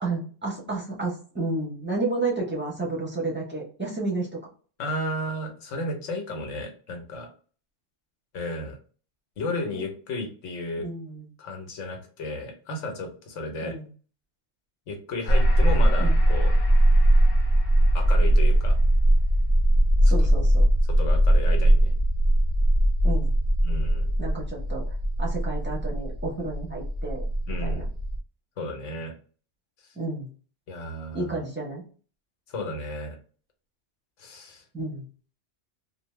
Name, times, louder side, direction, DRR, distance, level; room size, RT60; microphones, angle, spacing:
voice 1, 0.0-4.3 9.7-9.8 10.8-11.3 13.6-13.9 16.0-16.2 20.1-20.7 23.0-23.3 24.2-24.8 25.2-27.2 27.6-27.8 30.0-30.3 31.1-31.8 34.7-35.1, right 3 dB, 10° right, -2 dB, 0.6 m, -31 dB
voice 2, 4.8-7.3 8.3-8.8 9.4-10.9 11.4-13.8 14.9-16.5 17.9-18.8 20.0-20.3 21.0-21.9 23.6-24.1 27.5-27.9 28.6-29.1 30.7-31.4 32.5-33.2 34.2-34.6, left 1 dB, 85° left, 3 dB, 1.1 m, -33 dB
sound 1, 15.3-28.2, right 1 dB, 45° left, 0.7 m, -20 dB
2.7 x 2.1 x 3.1 m, 0.40 s
omnidirectional pair, 1.2 m